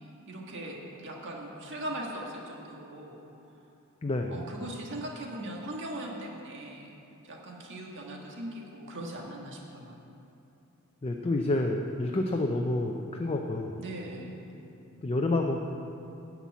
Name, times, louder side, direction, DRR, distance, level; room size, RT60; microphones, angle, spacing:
voice 1, 0.3-3.2 4.3-6.9 7.2-10.1 13.8-14.4, right 1 dB, 55° right, -1 dB, 1.7 m, -39 dB
voice 2, 4.0-4.3 11.0-13.8 15.0-15.6, left 2 dB, 25° left, 2 dB, 0.5 m, -28 dB
10.0 x 5.9 x 8.3 m, 2.8 s
head